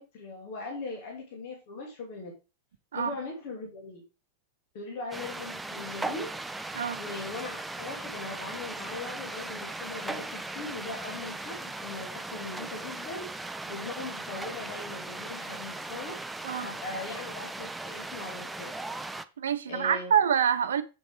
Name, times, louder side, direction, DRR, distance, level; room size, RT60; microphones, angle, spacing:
voice 1, 0.0-2.3 2.9-4.0 4.7-6.4 7.0-13.4 13.7-16.2 16.6-18.7 19.7-20.1, left 3 dB, 50° left, 2.9 m, -40 dB
sound 1, 5.1-19.2, right 2 dB, 5° right, 0.6 m, -38 dB
voice 2, 19.4-20.8, right 8 dB, 65° right, 0.9 m, -26 dB
8.0 x 7.1 x 3.5 m
figure-of-eight pair, 90°, 0 cm